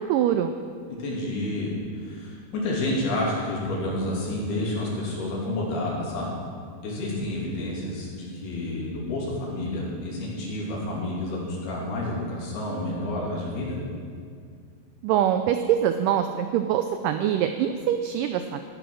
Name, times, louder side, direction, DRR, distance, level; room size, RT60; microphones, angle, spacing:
voice 1, 0.1-0.6 15.0-18.6, right 10 dB, 85° right, 8 dB, 1.9 m, -24 dB
voice 2, 0.9-6.3 6.8-13.8, left 1 dB, 80° left, -4 dB, 4.8 m, -29 dB
15.5 x 10.0 x 6.4 m, 2.1 s
omnidirectional pair, 4.4 m